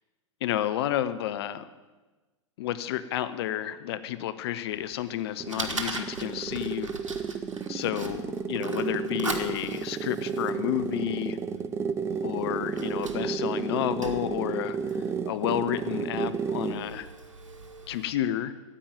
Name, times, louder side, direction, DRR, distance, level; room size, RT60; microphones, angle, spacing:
voice 1, 0.4-1.7 2.6-6.9 7.7-11.4 12.2-17.1 17.9-18.5, left 12 dB, 55° left, 13 dB, 0.7 m, -31 dB
Fire, 4.7-18.1, right 3 dB, 80° right, 1.4 m, -41 dB
sound 1, 5.1-16.9, right 6 dB, 15° right, 0.5 m, -32 dB
9.9 x 8.7 x 9.2 m, 1.2 s
figure-of-eight pair, 100°, 16 cm